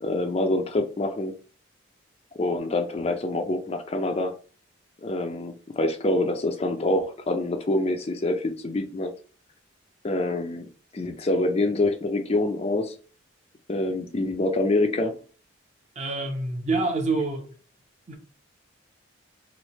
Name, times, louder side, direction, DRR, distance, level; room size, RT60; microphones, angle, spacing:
voice 1, 0.0-1.3 2.4-4.3 5.0-9.1 10.0-10.7 10.9-12.9 13.7-15.1, left 2 dB, 30° left, 0.4 m, -26 dB
voice 2, 16.0-17.5 18.1-18.2, right 3 dB, 35° right, 0.7 m, -27 dB
3.2 x 2.7 x 4.1 m
head